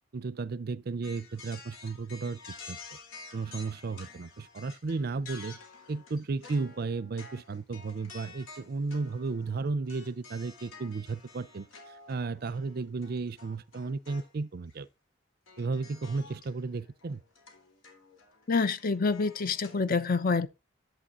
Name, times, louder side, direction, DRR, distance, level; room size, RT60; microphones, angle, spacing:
voice 1, 0.1-2.4 2.7-2.8 3.3-5.6 5.9-14.9 15.6-17.2, right 4 dB, 50° right, 0.5 m, -34 dB
sound 1, 1.0-14.3 14.7-14.8 15.5-19.8, left 4 dB, 85° left, 3.2 m, -51 dB
voice 2, 18.5-20.5, left 4 dB, 45° left, 0.6 m, -27 dB
11.0 x 8.1 x 2.5 m
head